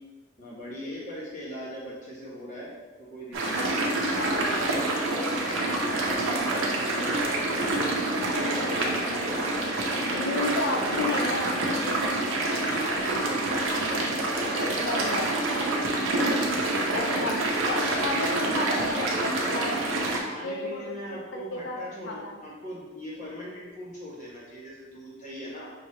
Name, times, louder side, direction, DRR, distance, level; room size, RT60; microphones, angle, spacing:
voice 1, 0.4-5.4 6.3-9.3 9.9-15.7 16.3-16.7 20.2-25.7, equal, 40° left, -6 dB, 1.3 m, -40 dB
sound 1, 3.3-20.2, right 2 dB, 80° right, 0.8 m, -27 dB
voice 2, 4.2-4.5 10.2-11.5 14.8-15.3 16.9-17.4 17.7-19.8 20.4-22.4, left 2 dB, 65° left, 2 dB, 0.6 m, -32 dB
5.8 x 2.8 x 3.1 m, 1.3 s
head